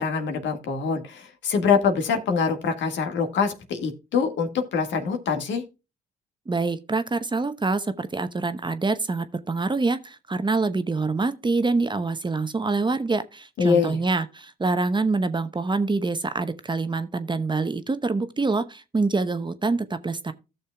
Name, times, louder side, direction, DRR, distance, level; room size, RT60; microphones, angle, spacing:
voice 1, 0.0-5.6 13.6-14.0, left 5 dB, 65° left, 1.7 m, -24 dB
voice 2, 6.5-20.3, right 3 dB, 25° right, 0.9 m, -25 dB
15.0 x 6.6 x 2.3 m
hypercardioid pair, 50°, 20 cm